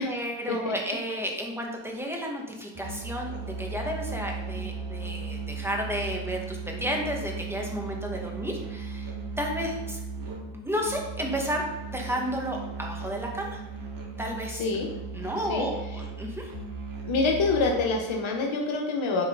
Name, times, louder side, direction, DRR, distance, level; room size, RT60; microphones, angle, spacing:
voice 1, 0.0-3.3 3.6-10.0 10.5-13.6 14.2-14.6 15.1-16.5, equal, 5° right, 0 dB, 1.8 m, -32 dB
Musical instrument, 2.7-18.1, right 4 dB, 45° right, 1.9 m, -37 dB
voice 2, 14.5-14.9 15.4-15.7 17.1-19.3, left 3 dB, 75° left, 1 dB, 1.2 m, -26 dB
10.5 x 4.0 x 4.0 m, 1.1 s
cardioid pair, 75°, 47 cm